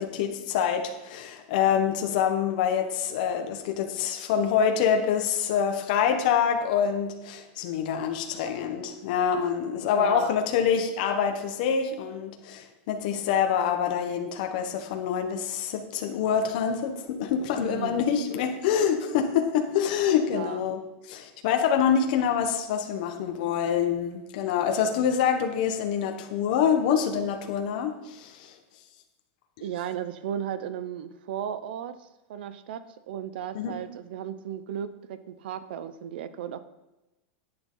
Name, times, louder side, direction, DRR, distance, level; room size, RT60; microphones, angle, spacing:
voice 1, 0.0-28.6 33.5-33.7, left 7 dB, 55° left, 4 dB, 1.2 m, -26 dB
voice 2, 9.9-10.3 17.5-18.0 20.3-20.6 29.6-36.6, right 9 dB, 75° right, 13 dB, 0.8 m, -35 dB
10.5 x 8.9 x 4.0 m, 1.0 s
supercardioid pair, 170°, 5 cm